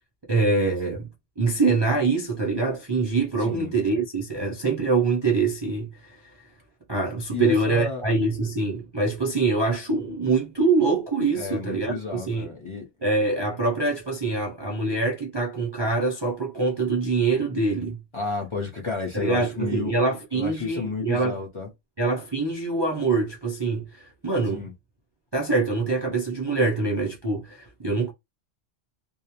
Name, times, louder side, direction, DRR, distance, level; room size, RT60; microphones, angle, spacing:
voice 1, 0.3-1.1 1.4-6.5 6.9-12.5 13.0-18.0 19.1-21.4 22.0-24.6 25.3-28.1, right 3 dB, 35° right, 0.4 m, -24 dB
voice 2, 3.4-3.7 7.3-8.0 11.3-12.9 18.1-19.9 20.3-21.7 24.5-24.7, left 3 dB, 35° left, 0.6 m, -31 dB
2.3 x 2.1 x 2.8 m
omnidirectional pair, 1.1 m